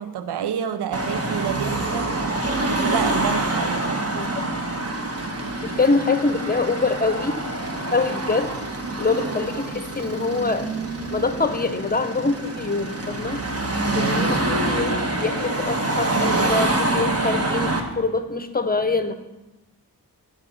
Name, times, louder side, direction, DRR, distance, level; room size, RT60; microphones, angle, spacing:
voice 1, 0.0-2.2 2.7-4.1 13.8-14.4, right 8 dB, 80° right, 0.6 m, -28 dB
Car passing by / Traffic noise roadway noise / Engine, 0.9-17.8, right 2 dB, 40° right, 1.1 m, -26 dB
voice 2, 5.6-7.5 7.9-8.5 9.0-10.7 11.1-13.4 13.9-19.1, left 3 dB, 25° left, 0.7 m, -24 dB
10.0 x 5.1 x 6.2 m
wide cardioid pair, 75°, 39 cm